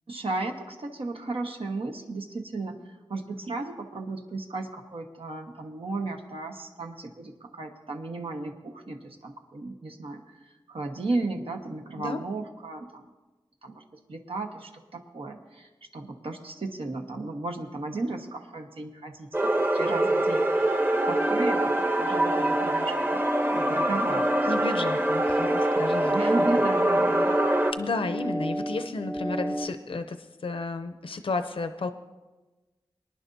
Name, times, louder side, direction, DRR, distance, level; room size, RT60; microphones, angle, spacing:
voice 1, 0.1-13.0 13.6-13.8 14.1-20.8 21.0-23.2 23.5-24.5 26.1-27.3, right 2 dB, 85° right, 3 dB, 1.2 m, -34 dB
sound 1, 19.3-27.7, right 1 dB, 25° right, 0.8 m, -24 dB
sound 2, 20.8-29.7, equal, 5° right, 0.3 m, -32 dB
voice 2, 24.5-26.2 27.7-31.9, left 3 dB, 75° left, 8 dB, 0.6 m, -32 dB
23.0 x 10.5 x 2.7 m, 1.2 s
wide cardioid pair, 75°, 9 cm